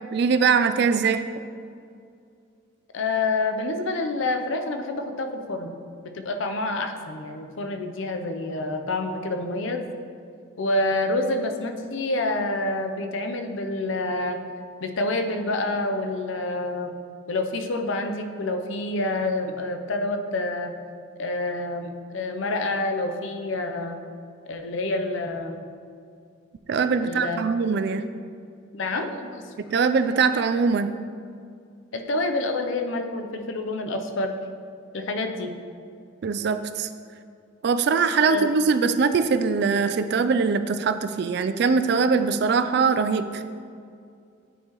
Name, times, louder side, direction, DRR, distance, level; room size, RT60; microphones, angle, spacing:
voice 1, 0.1-1.2 26.7-28.0 29.7-30.9 36.2-36.9 37.6-43.4, right 5 dB, 55° right, 10 dB, 0.3 m, -22 dB
voice 2, 2.9-5.7 6.0-9.8 10.6-14.4 14.8-16.9 17.3-20.7 21.2-24.0 24.5-25.6 27.0-27.4 28.7-29.5 31.9-34.3 34.9-35.5 38.3-38.5, left 2 dB, 70° left, 6 dB, 0.6 m, -27 dB
9.3 x 5.6 x 3.0 m, 2.3 s
head